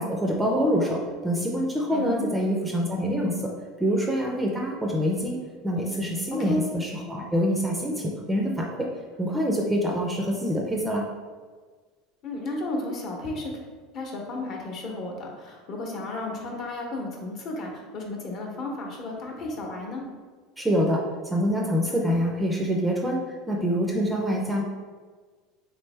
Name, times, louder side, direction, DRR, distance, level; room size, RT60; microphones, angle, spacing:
voice 1, 0.0-3.5 3.8-5.4 5.6-8.9 9.2-11.1 20.6-24.6, equal, 10° right, -1 dB, 0.4 m, -26 dB
voice 2, 1.9-2.3 6.4-6.6 12.2-13.6 13.9-20.0, left 2 dB, 40° left, 0 dB, 0.9 m, -33 dB
3.5 x 3.2 x 3.2 m, 1.5 s
supercardioid pair, 145°, 0 cm